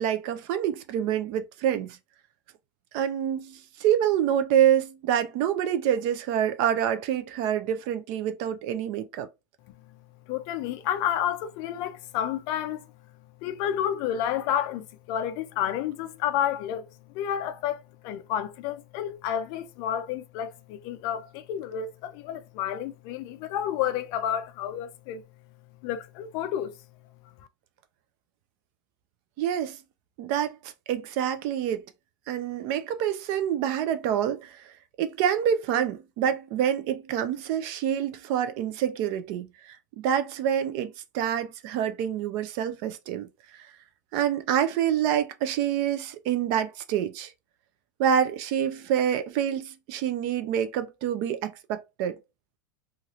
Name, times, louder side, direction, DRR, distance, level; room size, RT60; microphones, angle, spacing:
voice 1, 0.0-2.0 2.9-9.3 29.4-29.8 30.2-31.8 32.3-34.7 35.0-43.7 44.1-47.3 48.0-52.2, right 9 dB, 40° right, 0.4 m, -27 dB
voice 2, 10.3-12.9 13.4-16.9 17.1-25.2 25.8-26.7, left 10 dB, 40° left, 0.4 m, -30 dB
3.0 x 2.4 x 2.7 m
supercardioid pair, 175°, 10 cm